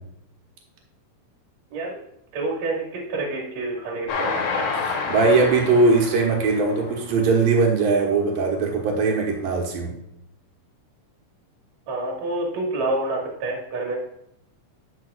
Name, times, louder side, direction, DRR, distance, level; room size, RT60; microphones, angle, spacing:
voice 1, 2.3-4.4 11.9-14.0, right 2 dB, 55° right, -1 dB, 2.9 m, -28 dB
Train, 4.1-7.5 8.0-8.1 8.4-8.5, left 4 dB, 80° left, 3.2 m, -29 dB
voice 2, 4.7-9.9, right 3 dB, 85° right, 0 dB, 3.0 m, -20 dB
11.0 x 6.1 x 2.4 m, 0.78 s
omnidirectional pair, 3.9 m